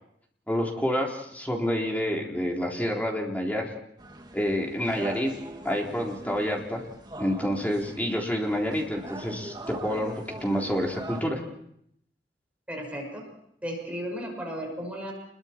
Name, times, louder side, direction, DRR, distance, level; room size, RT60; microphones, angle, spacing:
voice 1, 0.5-3.7 4.3-5.3 5.6-6.8 7.2-11.4, equal, 10° left, -1 dB, 3.8 m, -28 dB
sound 1, 4.0-11.2, right 1 dB, 25° right, 2.1 m, -42 dB
voice 2, 12.7-13.3 13.6-15.1, equal, 10° right, 0 dB, 6.1 m, -34 dB
30.0 x 22.5 x 4.5 m, 0.72 s
head